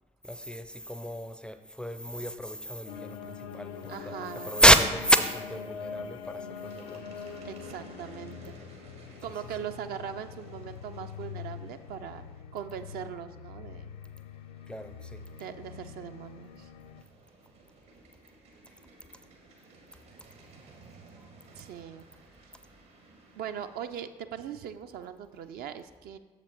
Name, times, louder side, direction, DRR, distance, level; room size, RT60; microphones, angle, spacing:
voice 1, 0.2-4.1 4.4-7.2 14.7-15.3, equal, 5° left, 9 dB, 0.4 m, -27 dB
sound 1, 2.9-17.0, left 7 dB, 70° left, 0.4 m, -44 dB
voice 2, 3.9-4.5 7.4-8.6 9.2-12.2 12.5-13.9 15.4-16.7 21.5-22.0 23.4-26.2, right 8 dB, 55° right, 8 dB, 0.4 m, -40 dB
sound 2, 6.5-24.0, right 3 dB, 70° right, 1.4 m, -56 dB
6.8 x 5.9 x 4.4 m, 1.2 s
figure-of-eight pair, 45°, 19 cm